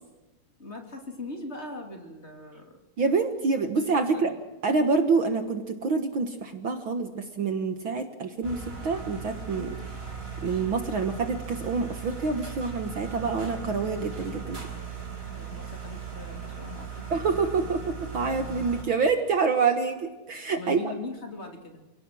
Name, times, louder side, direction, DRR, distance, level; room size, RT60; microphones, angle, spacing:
voice 1, 0.6-2.8 3.7-4.4 15.4-17.2 20.5-21.8, left 2 dB, 20° left, 3 dB, 2.9 m, -40 dB
voice 2, 3.0-4.3 4.6-9.8 10.4-14.6 17.1-20.9, right 4 dB, 50° right, 7 dB, 1.7 m, -27 dB
sound 1, 8.4-18.8, right 6 dB, 15° right, 4.5 m, -38 dB
29.0 x 17.5 x 6.3 m, 1.1 s
omnidirectional pair, 3.7 m